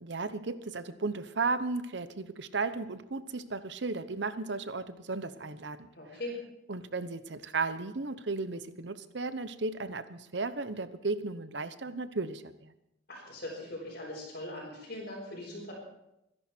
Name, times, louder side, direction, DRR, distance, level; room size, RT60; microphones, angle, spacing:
voice 1, 0.0-5.9 6.7-12.7, right 3 dB, 65° right, 12 dB, 1.0 m, -35 dB
voice 2, 5.9-6.4 13.1-15.7, left 1 dB, 55° left, -7 dB, 5.2 m, -40 dB
24.5 x 11.0 x 4.5 m, 0.87 s
head